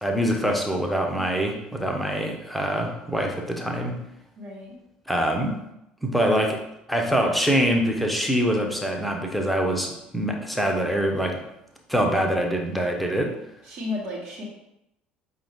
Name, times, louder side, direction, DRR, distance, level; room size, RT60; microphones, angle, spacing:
voice 1, 0.0-4.0 5.1-5.6 6.0-6.6 6.9-11.4 11.9-13.3, equal, ahead, 1 dB, 0.8 m, -24 dB
voice 2, 4.4-4.7 13.6-14.4, left 2 dB, 50° right, -3 dB, 1.2 m, -33 dB
5.3 x 2.5 x 3.6 m, 0.84 s
figure-of-eight pair, 60°, 5 cm